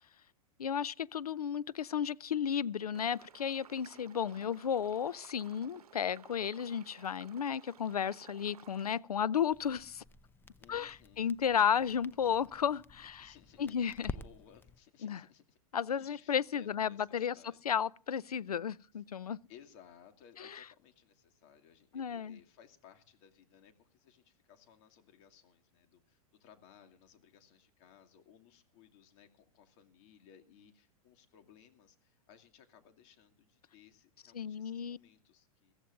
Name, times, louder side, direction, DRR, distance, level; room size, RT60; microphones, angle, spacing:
voice 1, 0.6-10.0 10.7-13.3 13.6-14.1 15.0-15.2 15.7-17.3 17.6-19.4 20.4-20.6 21.9-22.4 34.3-35.0, left 8 dB, 90° left, 0.5 m, -33 dB
sound 1, 2.9-9.0, right 9 dB, 80° right, 0.9 m, -58 dB
voice 2, 4.3-4.7 10.6-11.3 11.8-12.2 13.2-15.6 15.9-17.6 18.9-19.0 19.5-35.7, left 8 dB, 55° left, 2.5 m, -61 dB
Crackle, 9.5-14.8, left 4 dB, 10° left, 0.6 m, -49 dB
22.0 x 15.5 x 2.6 m
hypercardioid pair, 100°, 19 cm